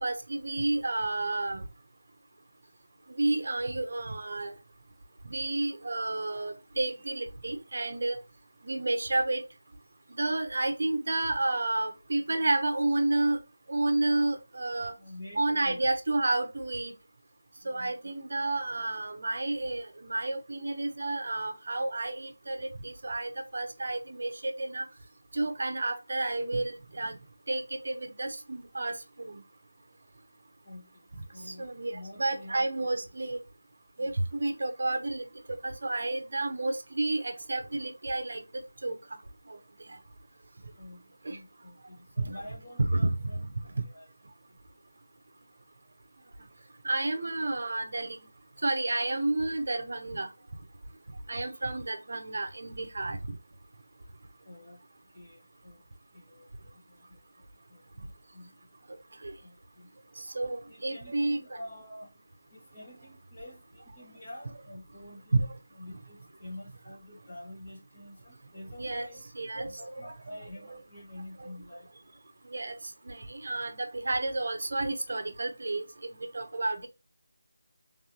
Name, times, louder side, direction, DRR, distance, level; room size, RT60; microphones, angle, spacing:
voice 1, 0.0-1.7 3.2-4.5 5.2-8.2 8.6-9.4 10.2-13.4 13.7-14.9 15.4-16.9 17.6-24.9 25.3-27.2 27.5-29.4 31.6-33.4 34.0-35.3 35.6-38.4 38.8-39.0 39.5-39.6 41.2-41.4 42.2-42.4 42.8-43.5 46.8-48.2 48.6-50.3 51.3-53.2 59.2-59.3 60.3-61.4 65.3-65.5 68.8-69.1 69.3-70.1 70.7-70.8 71.4-71.5 72.5-72.8 73.1-76.9, right 2 dB, 50° right, 0.9 m, -30 dB
voice 2, 15.0-15.9 17.6-18.1 30.6-33.1 34.0-34.2 40.8-43.4 43.7-44.1 54.4-54.8 55.1-55.9 56.1-57.3 57.7-58.6 59.4-59.9 60.7-65.4 65.7-69.3 69.6-71.9 76.8-76.9, left 1 dB, 25° left, 2.0 m, -48 dB
3.6 x 3.5 x 2.9 m
figure-of-eight pair, 175°, 0 cm